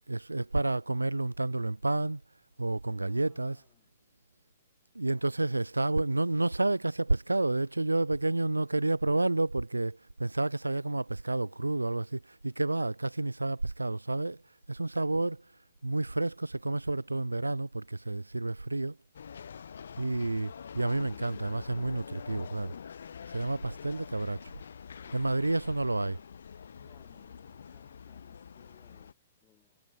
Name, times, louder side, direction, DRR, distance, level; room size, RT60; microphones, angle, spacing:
voice 1, 0.1-2.2 2.6-3.6 4.9-14.4 14.7-15.4 15.8-19.0 20.0-22.7 23.3-24.5 25.1-26.2, right 2 dB, 80° right, 0.4 m, -30 dB
voice 2, 2.9-4.0 25.0-25.6 26.7-29.8, left 13 dB, 25° left, 7.1 m, -66 dB
sound 1, 19.1-29.1, left 7 dB, 65° left, 1.8 m, -46 dB
figure-of-eight pair, 115°, 0 cm